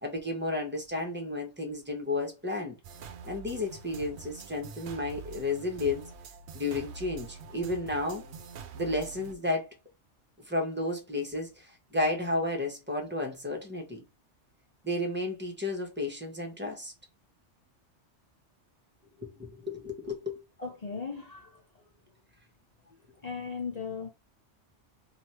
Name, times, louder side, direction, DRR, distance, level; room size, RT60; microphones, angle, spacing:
voice 1, 0.0-2.8 3.2-6.1 6.5-8.2 8.7-9.7 10.4-14.0 14.8-16.9 19.2-20.4, left 2 dB, 10° right, 1.0 m, -32 dB
sound 1, 2.8-9.3, right 5 dB, 65° right, 0.9 m, -45 dB
voice 2, 20.6-21.6 23.2-24.1, left 5 dB, 40° left, 0.8 m, -37 dB
3.1 x 2.8 x 4.2 m
omnidirectional pair, 1.2 m